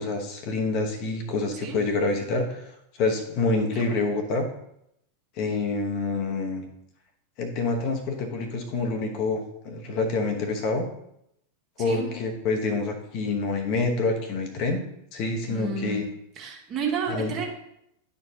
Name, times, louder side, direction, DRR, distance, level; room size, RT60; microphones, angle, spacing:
voice 1, 0.0-4.5 5.4-6.6 7.4-10.9 11.8-14.8 15.1-16.0 17.1-17.3, left 3 dB, 40° left, 4 dB, 1.0 m, -27 dB
voice 2, 11.8-12.1 15.5-16.0 16.3-17.5, right 6 dB, 35° right, 0 dB, 1.6 m, -31 dB
10.5 x 4.6 x 2.8 m, 0.78 s
figure-of-eight pair, 90°, 0 cm